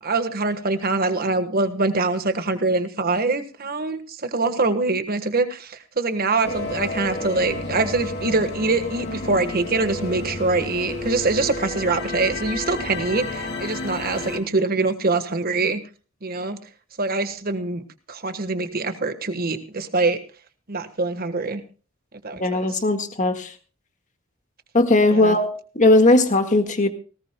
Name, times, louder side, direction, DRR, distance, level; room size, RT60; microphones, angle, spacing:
voice 1, 0.0-15.8 16.2-16.6 17.0-17.8 18.1-20.2 20.7-21.6 22.2-22.7 25.1-25.4, right 3 dB, 45° right, 9 dB, 1.4 m, -24 dB
sound 1, 6.4-14.4, left 2 dB, 55° left, 2.2 m, -31 dB
voice 2, 22.4-23.5 24.7-26.9, left 2 dB, 40° left, 6 dB, 1.7 m, -18 dB
19.0 x 18.0 x 2.2 m, 0.37 s
head